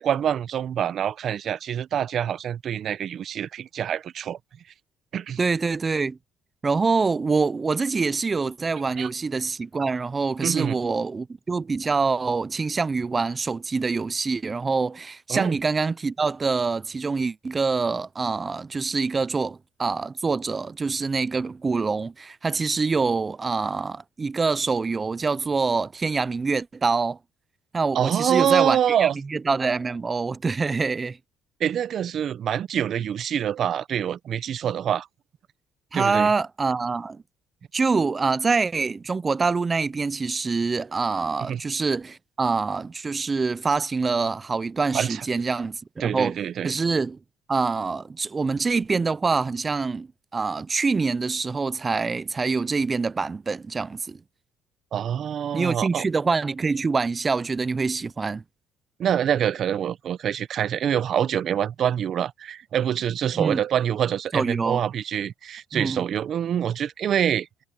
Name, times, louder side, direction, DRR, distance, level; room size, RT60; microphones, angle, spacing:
voice 1, 0.0-4.4 5.1-5.4 9.0-9.1 10.4-10.8 15.3-15.6 27.9-29.1 31.6-35.1 35.9-36.3 41.5-41.6 44.9-45.2 46.0-46.8 54.9-56.0 59.0-67.5, right 9 dB, 55° right, 0.8 m, -25 dB
voice 2, 5.4-6.2 6.6-27.2 27.7-31.2 35.9-37.2 37.7-46.4 46.6-47.2 47.5-50.1 50.3-54.2 55.5-58.4 63.4-63.6 64.3-64.8 65.7-66.0, right 4 dB, 25° right, 0.4 m, -25 dB
cardioid pair, 100°, 0 cm